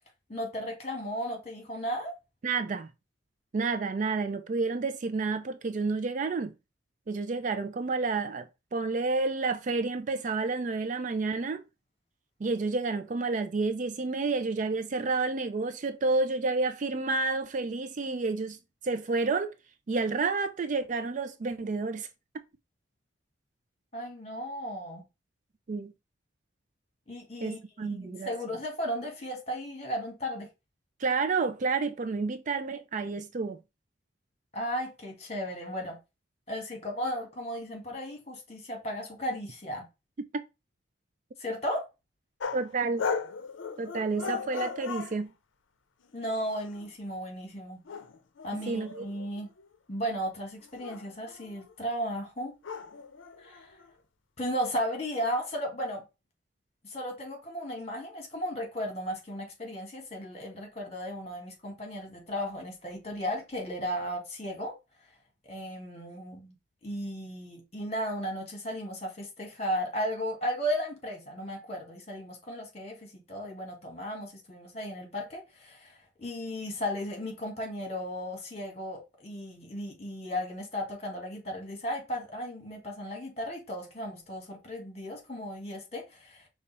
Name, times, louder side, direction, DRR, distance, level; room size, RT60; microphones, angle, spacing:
voice 1, 0.3-2.1 23.9-25.0 27.1-30.5 34.5-36.0 36.5-39.9 41.4-41.9 46.1-47.8 48.4-49.5 49.9-52.5 53.4-53.8 54.4-56.0 56.8-64.8 65.5-66.6 66.8-86.4, equal, 35° left, 1.8 m, -35 dB
voice 2, 2.4-2.9 3.5-6.5 7.1-8.5 8.7-11.6 12.4-18.6 18.8-19.5 19.9-22.1 25.7-25.9 27.4-28.3 31.0-33.6 42.5-43.1 43.8-45.3 48.5-49.1, right 3 dB, 40° right, 0.4 m, -30 dB
sound 1, 42.4-42.7 43.0-45.2 46.1-46.9 47.8-49.7 50.6-51.7 52.6-53.9, left 5 dB, 85° left, 0.5 m, -37 dB
5.3 x 2.4 x 4.1 m
head